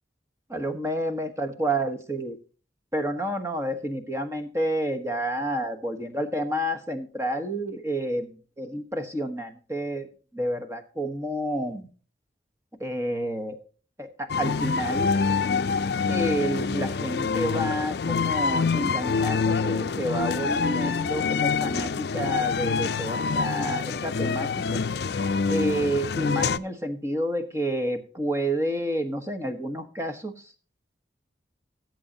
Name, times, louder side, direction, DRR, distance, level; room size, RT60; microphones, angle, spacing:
voice 1, 0.5-2.4 2.9-10.1 10.3-11.9 12.8-13.6 14.0-15.1 16.1-24.8 25.5-30.5, right 1 dB, 15° right, 6 dB, 1.3 m, -29 dB
sound 1, 14.3-26.6, left 5 dB, 65° left, 0.5 m, -26 dB
17.5 x 7.9 x 2.8 m, 0.38 s
head